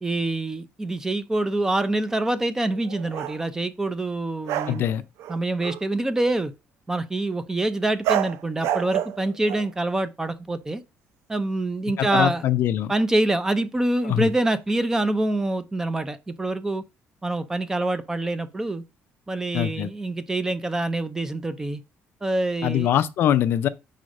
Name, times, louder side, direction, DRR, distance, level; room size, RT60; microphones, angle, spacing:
voice 1, 0.0-4.9 5.3-6.5 6.9-10.8 11.3-12.4 12.9-16.8 17.2-18.8 19.3-21.8 22.2-22.9, right 2 dB, 10° right, 0.4 m, -25 dB
sound 1, 2.7-3.4 4.4-4.8 5.2-5.9 8.0-9.7, right 11 dB, 75° right, 0.5 m, -29 dB
voice 2, 4.7-5.0 12.0-12.9 14.0-14.3 19.5-19.9 22.6-23.7, left 11 dB, 50° left, 0.4 m, -23 dB
5.0 x 3.8 x 5.2 m
cardioid pair, 175°, 5 cm